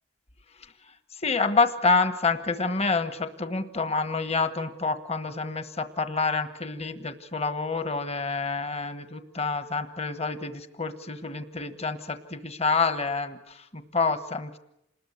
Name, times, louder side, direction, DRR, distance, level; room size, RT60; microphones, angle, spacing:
voice 1, 1.2-14.6, left 4 dB, 35° left, 11 dB, 1.3 m, -28 dB
27.5 x 20.5 x 8.1 m, 0.81 s
head